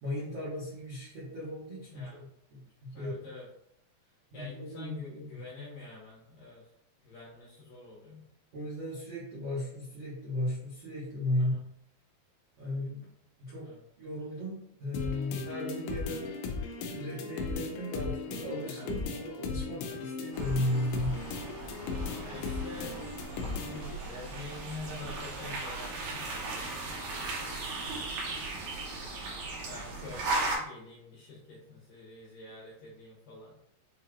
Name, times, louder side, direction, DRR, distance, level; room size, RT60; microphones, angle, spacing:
voice 1, 0.0-3.2 4.3-5.4 8.5-11.6 12.6-13.1 13.4-13.7 14.0-16.3 16.6-21.2, left 1 dB, 90° right, -10 dB, 1.3 m, -35 dB
voice 2, 1.9-2.2 2.9-3.5 4.3-6.6 7.0-8.2 11.4-11.6 13.6-13.8 18.6-18.9 19.8-20.1 22.2-23.1 23.6-28.4 29.7-33.5, left 3 dB, 70° left, -6 dB, 2.3 m, -47 dB
sound 1, 14.9-23.9, left 4 dB, 85° left, 2.3 m, -37 dB
sound 2, 20.3-30.6, right 3 dB, 70° right, 2.4 m, -37 dB
6.9 x 3.1 x 2.4 m, 0.71 s
omnidirectional pair, 5.2 m